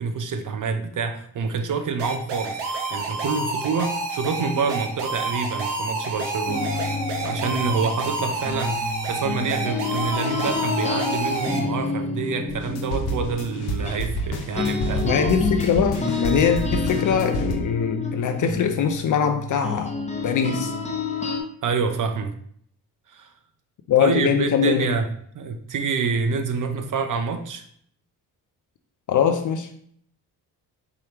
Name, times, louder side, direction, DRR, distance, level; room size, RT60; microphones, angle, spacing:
voice 1, 0.0-15.3 20.2-20.3 21.6-22.3 23.1-23.3 24.0-27.6, right 5 dB, 50° right, 7 dB, 0.6 m, -27 dB
sound 1, 2.0-11.6, right 3 dB, 75° right, 0.9 m, -29 dB
sound 2, 6.5-14.3 14.6-21.4, left 5 dB, 15° left, 0.9 m, -29 dB
sound 3, 12.5-17.5, right 1 dB, 90° left, 0.8 m, -29 dB
voice 2, 15.0-19.9 20.2-20.7 23.9-24.9 29.1-29.7, left 7 dB, 50° left, 6 dB, 0.5 m, -22 dB
4.7 x 3.2 x 2.9 m, 0.64 s
supercardioid pair, 55°, 41 cm